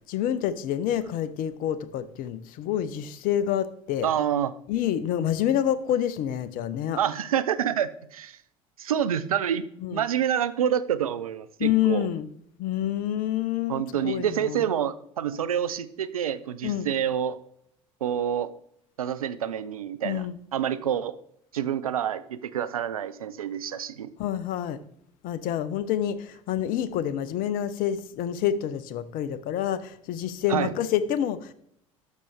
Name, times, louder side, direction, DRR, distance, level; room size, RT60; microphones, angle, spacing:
voice 1, 0.1-4.1 4.7-7.0 9.8-10.0 11.6-12.3 12.6-14.6 16.6-16.9 20.0-20.4 24.2-24.8 25.2-31.5, left 10 dB, 50° left, 16 dB, 0.7 m, -27 dB
voice 2, 4.0-4.5 7.0-8.4 8.8-9.7 9.9-12.1 13.7-17.4 18.0-18.5 19.0-21.2 21.5-24.1 30.5-30.7, right 9 dB, 85° right, 14 dB, 0.5 m, -27 dB
11.5 x 6.6 x 3.4 m, 0.72 s
hypercardioid pair, 70°, 18 cm